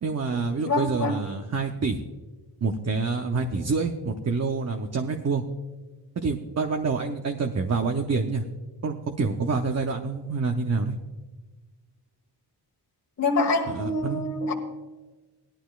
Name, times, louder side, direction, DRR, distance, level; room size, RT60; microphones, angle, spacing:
voice 1, 0.0-2.0 2.6-5.4 6.2-8.4 8.8-10.9 13.6-14.2, right 4 dB, 40° right, 4 dB, 0.7 m, -27 dB
voice 2, 0.7-1.1 13.2-14.5, left 2 dB, 40° left, 2 dB, 1.4 m, -25 dB
18.0 x 11.5 x 2.4 m, 1.3 s
wide cardioid pair, 155°, 40 cm